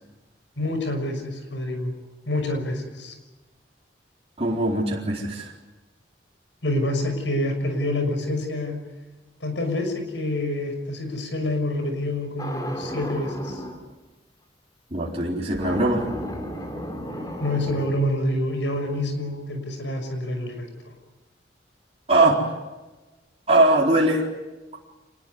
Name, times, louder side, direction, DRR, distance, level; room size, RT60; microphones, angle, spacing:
voice 1, 0.6-1.9 2.3-3.2 6.6-8.8 9.4-13.6 17.4-20.9, left 1 dB, 75° left, 6 dB, 6.2 m, -27 dB
voice 2, 4.4-5.5 14.9-16.0 22.1-22.4 23.5-24.2, right 2 dB, 35° right, -3 dB, 4.2 m, -20 dB
sound 1, 12.4-13.8 15.5-17.9, equal, 20° left, 3.6 m, -33 dB
26.0 x 20.5 x 9.6 m, 1.1 s
head